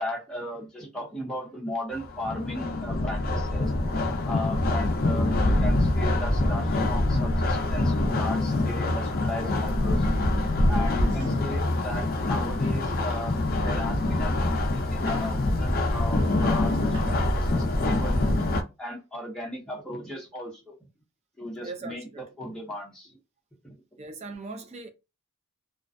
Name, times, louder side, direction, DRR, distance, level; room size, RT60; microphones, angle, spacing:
voice 1, 0.0-3.9 4.3-10.0 10.7-13.4 13.6-18.2 18.8-20.7 21.4-23.2 23.6-23.7, left 1 dB, 5° left, 0.7 m, -36 dB
sound 1, 1.9-18.6, left 2 dB, 40° left, 0.4 m, -25 dB
sound 2, 7.6-7.9 9.4-9.7 11.2-11.5 13.1-13.3 15.1-15.4 16.9-17.3 19.0-19.1, right 3 dB, 60° right, 0.8 m, -49 dB
voice 2, 21.6-22.2 24.0-24.9, right 3 dB, 30° right, 0.4 m, -40 dB
2.4 x 2.1 x 2.5 m
head